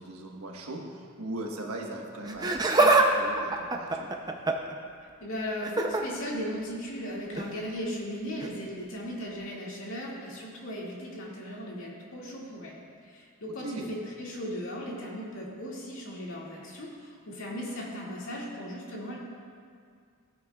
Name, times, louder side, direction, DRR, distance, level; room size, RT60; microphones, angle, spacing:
voice 1, 0.0-4.1 13.6-13.9, right 1 dB, 90° right, 0 dB, 1.3 m, -39 dB
Laughter, 2.3-3.1 3.4-4.7 5.6-6.0 7.3-7.5 8.4-8.5, right 2 dB, 20° right, 0.6 m, -23 dB
voice 2, 5.2-12.8 13.0-19.2, equal, 65° left, -4 dB, 2.2 m, -37 dB
16.0 x 9.4 x 2.4 m, 2.2 s
head